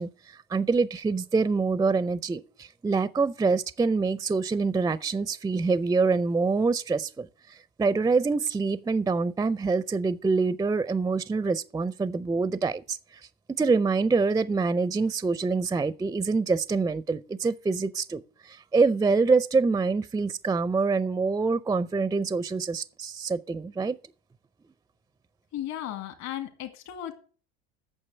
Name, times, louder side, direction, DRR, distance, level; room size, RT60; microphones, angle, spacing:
voice 1, 0.0-13.0 13.6-24.0, right 4 dB, 10° right, 0.5 m, -25 dB
voice 2, 25.5-27.1, left 11 dB, 60° left, 2.1 m, -35 dB
9.0 x 6.6 x 7.7 m
hypercardioid pair, 75°, 31 cm